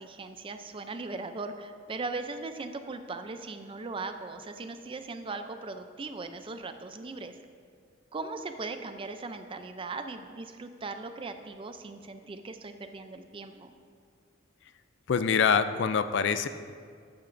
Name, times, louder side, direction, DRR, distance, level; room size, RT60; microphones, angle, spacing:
voice 1, 0.0-7.4 8.1-13.7, right 3 dB, 25° right, 8 dB, 0.4 m, -39 dB
voice 2, 15.1-16.5, left 6 dB, 60° left, 12 dB, 0.4 m, -25 dB
14.0 x 8.7 x 2.6 m, 2.1 s
head